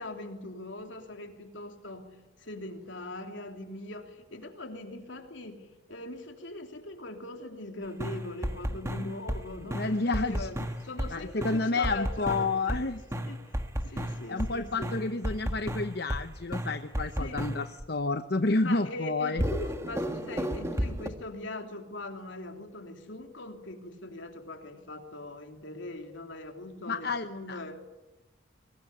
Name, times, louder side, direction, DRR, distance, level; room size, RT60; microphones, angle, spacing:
voice 1, 0.0-12.8 13.1-13.6 13.9-14.9 17.2-17.5 18.6-27.8, left 2 dB, 75° left, 4 dB, 3.2 m, -41 dB
sound 1, 8.0-9.4 9.7-11.1 11.4-14.5 14.8-16.2 16.5-17.8 19.4-21.1, equal, 15° right, 1.5 m, -32 dB
voice 2, 9.7-10.5 11.1-13.0 13.8-19.4 26.9-27.6, left 3 dB, 55° left, 8 dB, 0.9 m, -30 dB
22.5 x 19.5 x 9.9 m, 1.1 s
head